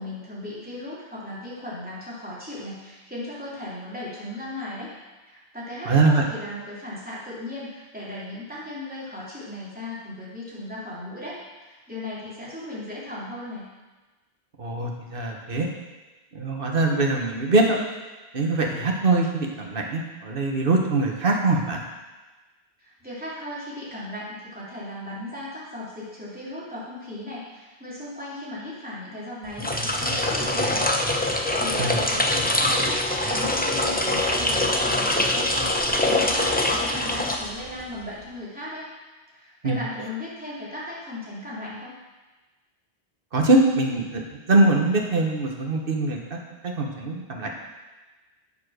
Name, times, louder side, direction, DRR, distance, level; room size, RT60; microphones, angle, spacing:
voice 1, 0.0-4.9 5.2-13.6 22.8-30.9 31.3-38.9 39.3-41.9, left 1 dB, 10° right, -9 dB, 3.2 m, -37 dB
voice 2, 5.8-6.2 14.6-15.7 16.3-17.8 18.3-21.8 31.8-32.0 32.3-32.4 39.6-39.8 43.3-44.2 44.5-47.5, right 2 dB, 60° right, 1 dB, 1.5 m, -22 dB
sound 1, 29.5-37.9, left 1 dB, 10° left, 0.7 m, -24 dB
7.5 x 7.0 x 6.4 m, 1.2 s
omnidirectional pair, 1.1 m